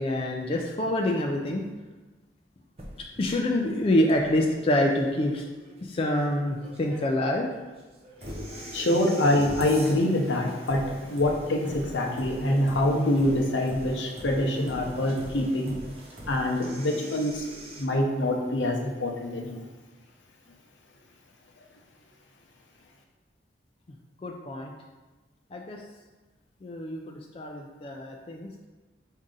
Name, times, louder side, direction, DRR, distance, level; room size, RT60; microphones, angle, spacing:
voice 1, 0.0-1.7 3.2-5.5 5.8-7.5 23.9-24.0 24.2-24.7 25.5-25.8 26.6-28.7, left 1 dB, 30° left, 0 dB, 0.3 m, -26 dB
sound 1, 2.8-17.8, equal, 35° right, 0.6 m, -43 dB
voice 2, 8.2-15.8 16.3-17.4 17.8-19.6, left 1 dB, 80° left, 1 dB, 0.7 m, -25 dB
4.8 x 2.7 x 3.7 m, 1.2 s
head